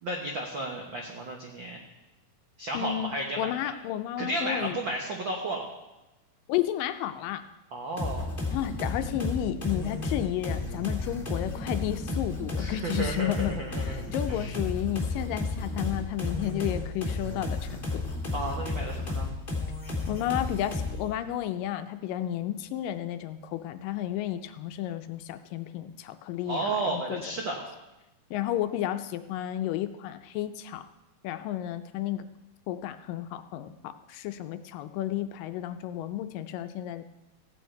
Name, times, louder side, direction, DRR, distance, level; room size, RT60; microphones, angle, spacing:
voice 1, 0.0-1.8 2.6-3.7 4.2-5.6 7.7-8.3 12.6-14.0 14.3-14.5 18.3-19.3 26.5-27.6, right 2 dB, 85° right, 1 dB, 1.0 m, -33 dB
voice 2, 2.7-4.8 6.5-7.5 8.5-18.0 20.1-27.2 28.3-30.9 31.2-32.3 32.7-37.0, left 12 dB, 80° left, 10 dB, 2.2 m, -32 dB
sound 1, 8.0-21.1, left 3 dB, 20° left, 1.8 m, -32 dB
15.5 x 9.0 x 4.6 m, 1.0 s
omnidirectional pair, 4.1 m